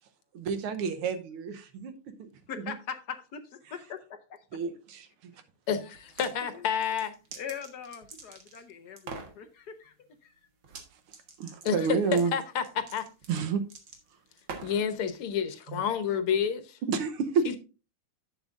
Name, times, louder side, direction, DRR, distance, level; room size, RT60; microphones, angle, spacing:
voice 1, 0.3-2.3 2.7-2.8 4.5-5.3 11.4-12.3 13.3-13.6 15.7-15.8 16.8-17.6, right 5 dB, 85° right, 1.8 m, -30 dB
voice 2, 2.5-3.4 3.7-4.2 6.5-6.6 7.3-9.9 10.2-10.3, left 7 dB, 60° left, 1.1 m, -41 dB
voice 3, 5.7-7.1 11.7-12.0 12.3-12.6 12.9-13.0 14.6-16.8 17.5-17.6, left 7 dB, 85° left, 1.9 m, -29 dB
sound 1, 5.9-6.3 6.8-8.6 9.0-9.4 10.6-10.9 11.1-14.9, right 5 dB, 65° right, 2.2 m, -44 dB
10.5 x 7.9 x 2.5 m
omnidirectional pair, 2.4 m